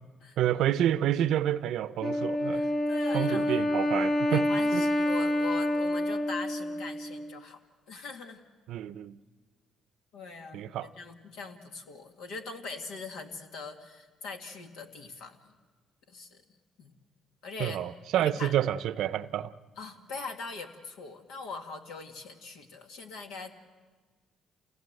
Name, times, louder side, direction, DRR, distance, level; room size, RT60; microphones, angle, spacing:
voice 1, 0.4-2.6 3.1-4.5 4.7-4.8 8.7-9.2 10.5-10.9 17.6-19.5, right 11 dB, 75° right, 15 dB, 0.6 m, -29 dB
Wind instrument woodwind instrument, 2.0-7.4, left 1 dB, 35° left, 0.8 m, -28 dB
voice 2, 2.5-3.7 4.3-7.6 7.9-8.4 10.1-15.4 16.1-16.4 16.8-16.9 17.4-17.8 18.1-18.5 19.8-23.5, left 4 dB, 85° left, 4 dB, 2.1 m, -42 dB
28.0 x 17.5 x 7.9 m, 1.4 s
supercardioid pair, 80°, 0 cm